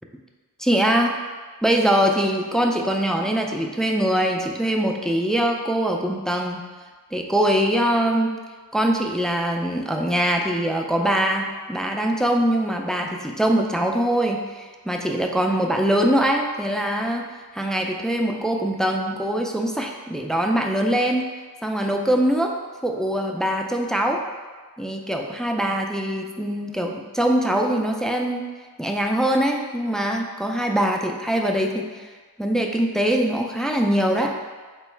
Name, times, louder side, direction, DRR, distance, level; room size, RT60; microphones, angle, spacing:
voice 1, 0.6-1.2 1.6-6.6 7.1-8.3 8.7-17.2 17.5-21.2 21.6-22.5 22.8-24.2 24.8-28.5 28.8-32.0 32.4-34.3, right 1 dB, ahead, 2 dB, 0.3 m, -22 dB
4.5 x 3.0 x 3.2 m, 1.4 s
wide cardioid pair, 75°, 37 cm